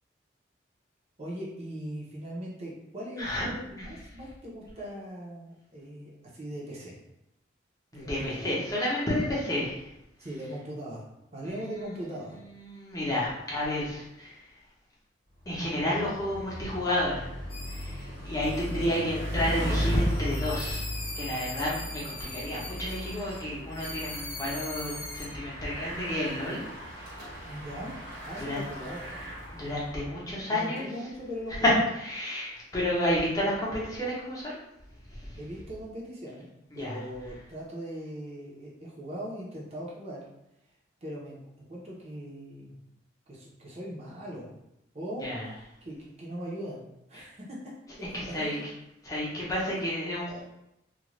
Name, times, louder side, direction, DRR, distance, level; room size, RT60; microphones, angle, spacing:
voice 1, 1.2-7.0 7.9-8.5 10.2-11.0 11.3-12.4 18.6-19.4 27.5-27.9 28.3-29.1 30.5-31.7 35.4-36.5 36.7-40.2 41.0-42.7 43.3-44.5 44.9-47.7 48.0-48.6, equal, 35° right, -4 dB, 0.7 m, -40 dB
voice 2, 7.9-9.8 11.4-11.9 12.3-14.4 15.5-17.3 17.7-20.8 21.1-26.6 27.1-27.5 28.5-28.6 29.5-30.8 31.6-31.7 32.0-34.6 35.1-35.4 36.7-37.0 45.2-45.5 48.1-48.6 49.1-50.4, left 1 dB, 20° left, -7 dB, 0.8 m, -31 dB
Bicycle, 15.4-30.0, equal, 55° right, 1.0 m, -36 dB
sound 1, 17.5-18.0 18.4-19.0 19.5-23.4 23.7-25.3, left 2 dB, 65° left, 0.7 m, -41 dB
2.4 x 2.2 x 3.1 m, 0.85 s
head